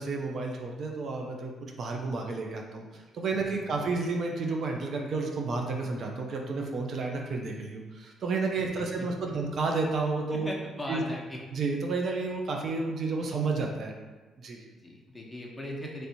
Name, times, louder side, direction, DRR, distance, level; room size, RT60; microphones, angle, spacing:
voice 1, 0.0-10.5 10.9-11.0 11.5-13.9 14.4-14.7, right 3 dB, 55° right, 1 dB, 0.5 m, -31 dB
voice 2, 3.4-3.8 8.7-9.1 10.3-11.4 14.8-16.1, left 1 dB, 10° left, -3 dB, 0.9 m, -39 dB
3.2 x 2.6 x 4.4 m, 1.3 s
cardioid pair, 90°, 0 cm